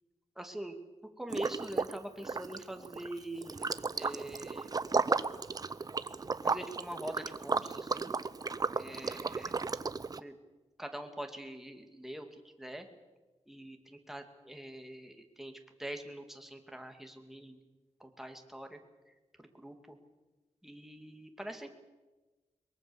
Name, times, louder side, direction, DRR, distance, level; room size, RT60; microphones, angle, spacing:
voice 1, 0.4-0.8 1.2-4.8 6.4-8.1 8.7-9.5 10.2-10.3 10.8-12.9 13.5-17.6 18.0-18.8 19.4-20.0 20.6-21.7, right 1 dB, 5° right, 5 dB, 2.4 m, -44 dB
Liquid, 1.3-2.0 2.2-10.2, right 4 dB, 30° right, 0.7 m, -34 dB
23.5 x 23.0 x 7.1 m, 1.2 s
wide cardioid pair, 160°, 12 cm